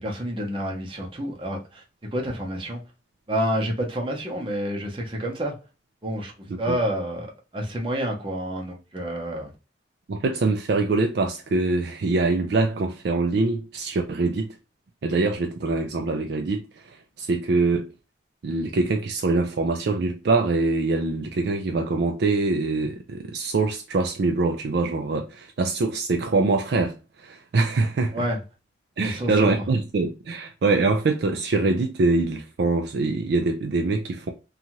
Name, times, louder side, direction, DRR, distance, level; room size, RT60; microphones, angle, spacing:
voice 1, 0.0-1.8 2.1-2.8 3.3-5.6 6.0-6.3 6.6-7.3 7.5-9.5 28.1-28.4 29.0-29.3, equal, 25° right, 0.7 m, -28 dB
voice 2, 10.1-14.6 15.0-17.9 18.4-28.2 29.0-34.3, right 3 dB, 60° right, 0.4 m, -24 dB
2.7 x 2.4 x 2.8 m
head